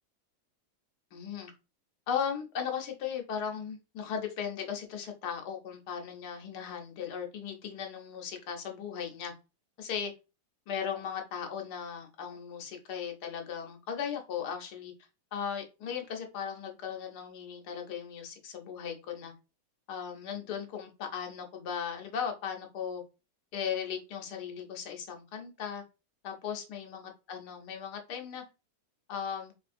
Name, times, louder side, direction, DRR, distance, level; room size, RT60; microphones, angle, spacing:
voice 1, 1.1-1.5 2.1-9.3 9.8-10.1 10.7-14.9 15.3-19.3 19.9-23.0 23.5-25.8 26.2-28.4 29.1-29.5, left 7 dB, 85° left, 2 dB, 1.3 m, -37 dB
4.0 x 2.4 x 2.5 m, 0.29 s
omnidirectional pair, 1.7 m